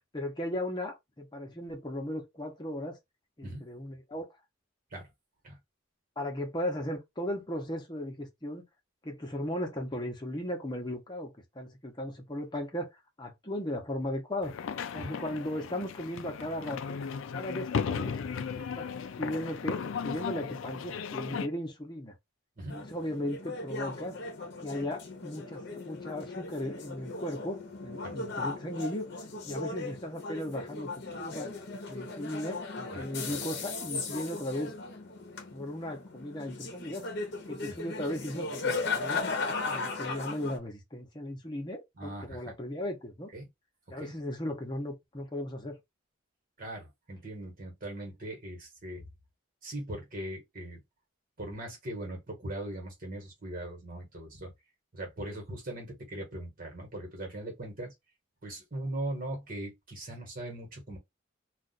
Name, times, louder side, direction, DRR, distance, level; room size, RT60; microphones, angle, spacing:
voice 1, 0.1-3.0 3.4-4.3 6.2-8.6 9.0-12.9 13.2-14.5 14.9-17.0 17.3-18.1 18.6-18.9 19.2-22.1 22.7-24.2 24.6-29.1 29.4-31.5 31.9-34.7 35.5-37.1 37.5-39.2 39.7-43.3 43.9-45.8, left 1 dB, 20° left, 0.8 m, -36 dB
sound 1, 14.4-21.5, left 6 dB, 70° left, 0.4 m, -36 dB
sound 2, 22.7-40.6, left 3 dB, 55° left, 0.8 m, -37 dB
voice 2, 42.0-42.5 43.3-43.5 44.0-44.1 46.6-49.0 49.6-50.8 51.4-54.5 54.9-57.9 58.4-61.0, right 1 dB, 45° right, 1.4 m, -40 dB
2.4 x 2.4 x 4.0 m
head